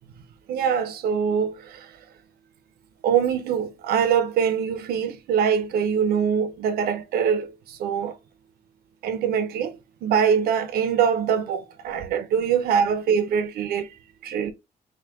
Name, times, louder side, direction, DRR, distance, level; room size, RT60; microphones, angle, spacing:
voice 1, 0.5-1.5 3.0-7.5 7.8-8.1 9.0-9.8 10.0-13.9 14.2-14.5, right 7 dB, 85° right, 0.6 m, -23 dB
4.6 x 2.2 x 3.5 m
cardioid pair, 150°, 16 cm